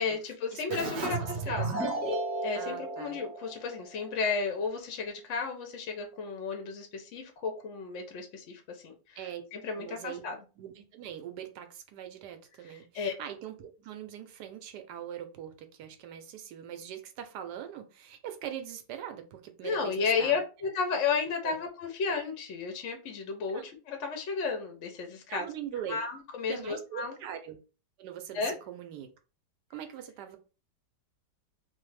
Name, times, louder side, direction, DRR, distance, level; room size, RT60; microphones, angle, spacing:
voice 1, 0.0-1.2 1.5-1.8 2.4-9.2 9.5-10.4 12.6-13.1 19.6-25.4 25.9-27.1 28.3-28.5, left 5 dB, 65° left, 0.7 m, -33 dB
voice 2, 0.5-1.9 2.5-3.2 9.2-9.4 9.8-10.2 10.6-20.4 21.4-21.6 23.5-23.6 25.3-26.0 26.5-27.6 28.0-29.1 29.7-30.4, right 10 dB, 75° right, 1.1 m, -42 dB
Keyboard (musical), 0.7-4.1, right 2 dB, 60° right, 0.7 m, -34 dB
3.1 x 2.0 x 3.1 m
omnidirectional pair, 2.0 m